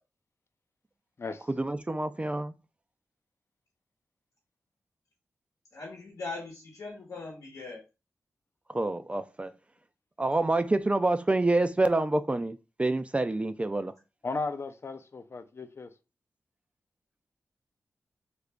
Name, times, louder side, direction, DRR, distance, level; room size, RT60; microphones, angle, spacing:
voice 1, 1.6-2.5 8.7-9.5 10.2-13.9, right 2 dB, 20° right, 0.3 m, -27 dB
voice 2, 5.7-7.8, left 3 dB, 80° left, 0.9 m, -40 dB
voice 3, 14.2-15.9, left 3 dB, 50° left, 0.5 m, -35 dB
2.8 x 2.5 x 3.3 m
cardioid pair, 45°, 5 cm